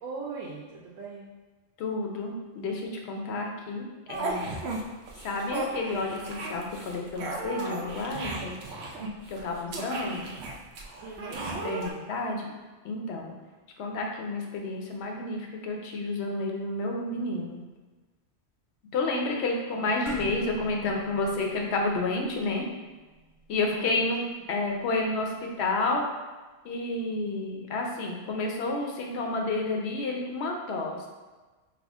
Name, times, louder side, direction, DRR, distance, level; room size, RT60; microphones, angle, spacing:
voice 1, 0.0-1.3 9.6-10.2 11.0-12.0 19.8-19.9 23.5-24.0, right 4 dB, 85° right, -4 dB, 1.0 m, -40 dB
voice 2, 1.8-4.5 5.2-8.5 9.3-10.3 11.6-12.5 12.8-13.3 13.8-17.6 18.9-22.7 23.5-24.2 24.5-26.1 26.6-31.0, left 2 dB, 60° left, 1 dB, 0.9 m, -30 dB
sound 1, 4.1-4.8 5.1-11.9, right 2 dB, 60° right, 0.8 m, -35 dB
sound 2, 20.1-24.7, right 1 dB, 45° right, 1.1 m, -46 dB
5.9 x 2.1 x 3.5 m, 1.2 s
omnidirectional pair, 1.3 m